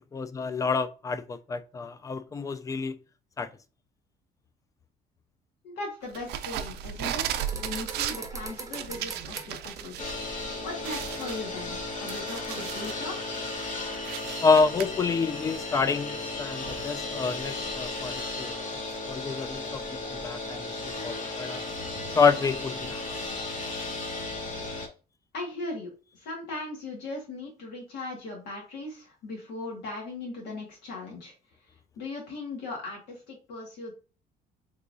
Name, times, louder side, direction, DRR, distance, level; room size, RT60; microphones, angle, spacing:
voice 1, 0.1-3.0 3.4-3.5 14.4-18.6 19.1-21.6 22.1-23.0, left 5 dB, 20° left, 0.3 m, -28 dB
voice 2, 5.6-13.2 25.3-31.3 32.0-33.9, left 2 dB, 80° left, 1.8 m, -38 dB
sound 1, 6.1-10.1 10.4-10.5 10.8-13.0 13.5-14.9, right 10 dB, 80° right, 0.4 m, -35 dB
sound 2, 7.3-10.1 12.1-12.2 12.6-12.9, right 4 dB, 20° right, 0.7 m, -41 dB
sound 3, 10.0-24.9, left 2 dB, 50° left, 1.0 m, -35 dB
3.6 x 2.9 x 2.6 m
cardioid pair, 110°, 17 cm